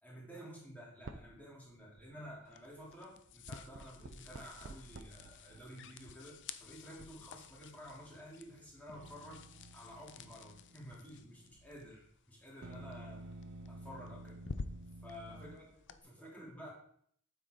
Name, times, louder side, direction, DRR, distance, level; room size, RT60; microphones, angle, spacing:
voice 1, 0.0-9.4 9.7-13.2 13.7-14.4 15.0-15.5 16.0-16.7, equal, 5° left, -5 dB, 3.5 m, -51 dB
sound 1, 1.0-1.4 1.7-2.3 3.1-12.0 12.6-15.6, right 2 dB, 55° right, 0.6 m, -53 dB
sound 2, 2.4-16.0, left 4 dB, 55° left, 0.6 m, -52 dB
voice 2, 15.1-16.7, equal, 10° right, -5 dB, 1.8 m, -62 dB
9.1 x 8.0 x 4.0 m, 0.63 s
head